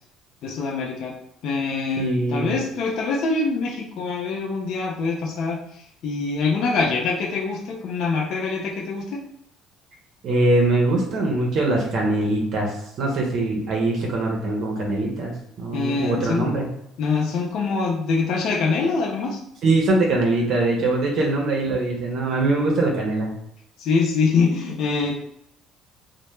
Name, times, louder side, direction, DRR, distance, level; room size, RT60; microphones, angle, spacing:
voice 1, 0.4-1.1 1.4-9.2 15.7-16.5 17.0-19.4 21.2-21.3 23.8-25.2, left 4 dB, 65° left, -1 dB, 0.4 m, -24 dB
voice 2, 2.0-2.6 10.2-16.7 19.6-23.3, right 2 dB, 60° right, -1 dB, 0.6 m, -22 dB
2.1 x 2.0 x 3.0 m, 0.75 s
cardioid pair, 115°, 0 cm